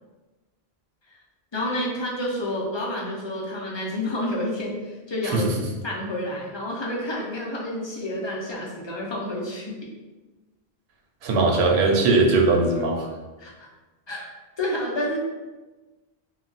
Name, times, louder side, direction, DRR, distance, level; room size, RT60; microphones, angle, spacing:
voice 1, 1.5-5.4 5.8-9.8 13.4-13.7 14.1-15.2, left 1 dB, 35° left, -4 dB, 0.5 m, -29 dB
voice 2, 11.2-13.1, right 3 dB, 90° right, 1 dB, 0.8 m, -20 dB
2.3 x 2.0 x 3.8 m, 1.2 s
omnidirectional pair, 1.0 m